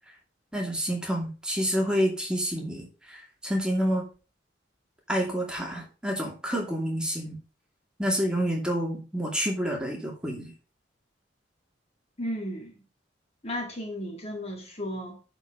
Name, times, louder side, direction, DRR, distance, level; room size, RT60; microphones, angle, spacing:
voice 1, 0.5-4.0 5.1-7.4 8.0-10.5, equal, 5° right, 2.5 m, -28 dB
voice 2, 12.2-12.7 13.4-15.2, equal, 35° left, 1.8 m, -34 dB
10.5 x 4.6 x 5.0 m
head